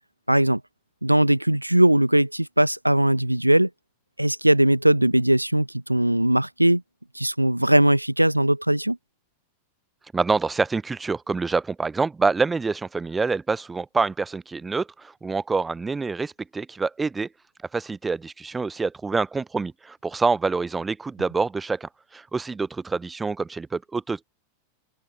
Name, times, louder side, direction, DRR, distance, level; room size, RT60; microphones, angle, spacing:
voice 1, 0.3-0.6 1.0-3.7 4.2-6.8 7.1-9.0, right 1 dB, 85° right, 0.8 m, -19 dB
voice 2, 10.1-17.3 17.7-24.2, right 4 dB, 10° right, 0.6 m, -26 dB
open air
figure-of-eight pair, 90°, 0 cm